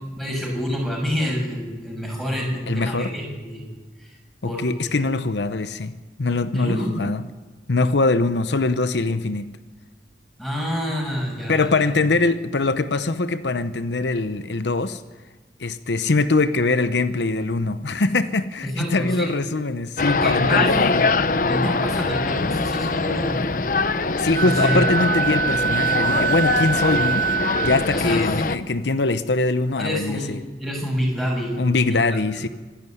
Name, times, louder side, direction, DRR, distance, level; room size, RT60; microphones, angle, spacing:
voice 1, 0.1-3.6 4.0-4.1 4.4-4.7 4.9-5.0 6.5-6.9 10.4-11.9 18.6-19.3 20.0-20.7 21.5-23.4 24.4-24.9 27.9-28.2 29.8-32.2, equal, ahead, 6.5 m, -27 dB
voice 2, 2.7-3.1 4.4-5.9 6.2-7.2 7.7-9.5 11.5-15.0 15.6-21.4 24.2-27.3 27.6-30.4 31.6-32.5, left 3 dB, 85° left, 0.8 m, -22 dB
sound 1, 20.0-28.6, left 3 dB, 50° left, 0.8 m, -23 dB
Wind instrument woodwind instrument, 24.3-27.9, right 7 dB, 60° right, 1.1 m, -24 dB
25.5 x 11.0 x 9.4 m
head